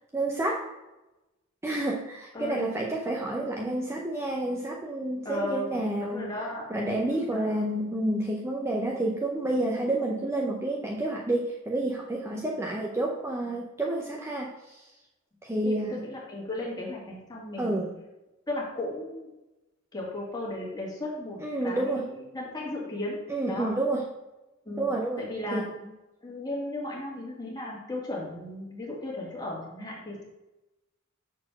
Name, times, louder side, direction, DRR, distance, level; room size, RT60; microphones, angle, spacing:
voice 1, 0.1-0.7 1.6-6.3 6.7-14.8 15.4-16.0 17.6-17.9 21.4-22.0 23.3-24.0 24.8-25.2 25.5-25.7, right 1 dB, 15° right, -2 dB, 0.6 m, -29 dB
voice 2, 2.3-2.7 5.2-6.7 7.1-7.5 12.3-12.5 15.6-17.9 18.5-19.3 19.9-21.4 21.6-23.2 23.5-23.7 24.6-24.9 25.2-25.6 26.2-30.2, left 1 dB, 20° left, -4 dB, 2.0 m, -35 dB
6.3 x 4.3 x 6.0 m, 1.0 s
head